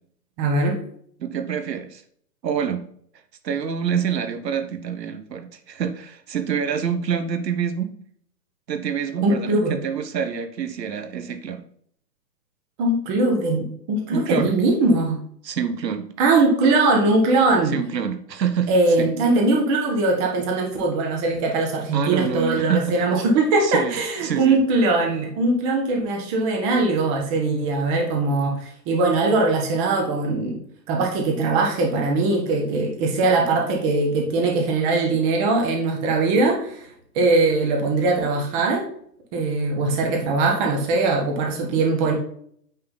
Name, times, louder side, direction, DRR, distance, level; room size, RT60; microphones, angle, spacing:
voice 1, 0.4-0.8 9.2-9.7 12.8-15.2 16.2-17.7 18.7-30.6 30.9-36.9 37.1-38.8 39.3-42.1, right 3 dB, 20° right, 1 dB, 1.5 m, -21 dB
voice 2, 1.2-2.0 2.4-2.8 3.4-7.9 8.7-11.6 14.1-14.6 15.4-16.1 17.6-18.7 19.0-19.1 21.9-22.9 23.6-24.6, right 7 dB, 80° right, 9 dB, 1.2 m, -26 dB
9.6 x 3.9 x 3.9 m, 0.64 s
hypercardioid pair, 160°, 50 cm